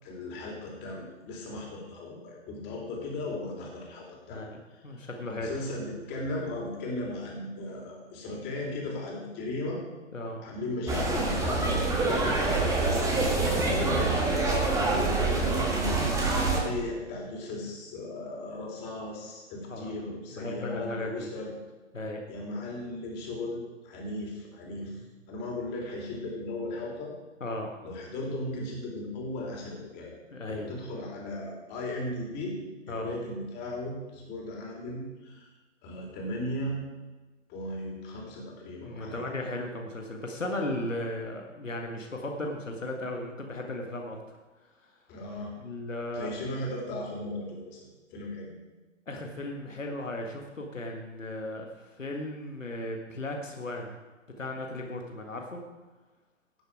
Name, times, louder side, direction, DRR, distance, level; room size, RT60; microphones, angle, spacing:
voice 1, 0.0-4.8 5.4-9.8 10.4-14.1 14.9-16.0 16.3-21.5 22.3-25.0 25.3-27.1 27.8-30.1 30.5-32.6 32.9-35.5 35.8-36.8 37.5-39.2 45.1-45.5 46.1-48.5, left 1 dB, 25° left, -1 dB, 3.6 m, -36 dB
voice 2, 4.3-5.5 10.1-10.4 14.4-14.7 19.7-19.9 20.4-21.3 21.9-22.2 27.4-27.7 30.3-30.7 32.9-33.1 38.8-44.4 45.6-46.3 49.1-54.0 54.4-55.6, left 1 dB, 80° left, 2 dB, 1.8 m, -36 dB
sound 1, 10.9-16.6, right 3 dB, 10° right, 1.8 m, -26 dB
17.5 x 6.9 x 4.9 m, 1.2 s
figure-of-eight pair, 115°, 38 cm